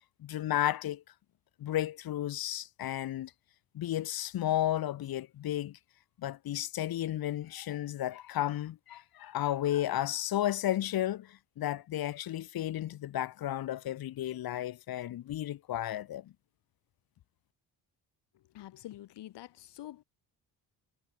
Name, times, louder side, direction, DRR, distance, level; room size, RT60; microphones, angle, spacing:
voice 1, 0.2-1.0 1.6-3.3 3.7-5.8 6.2-16.3, left 13 dB, 60° left, 1.0 m, -33 dB
voice 2, 18.3-20.0, left 14 dB, 75° left, 1.5 m, -47 dB
wide cardioid pair, 165°, 41 cm